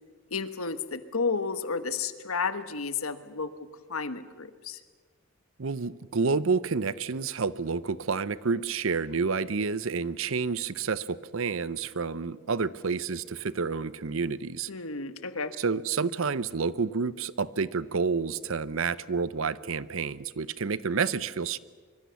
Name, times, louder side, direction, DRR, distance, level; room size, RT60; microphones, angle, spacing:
voice 1, 0.3-3.5 3.9-4.8 14.7-15.5, left 4 dB, 85° left, 11 dB, 1.4 m, -32 dB
voice 2, 5.6-14.7 15.6-21.6, right 5 dB, 70° right, 17 dB, 0.7 m, -29 dB
24.5 x 23.0 x 7.0 m, 1.5 s
head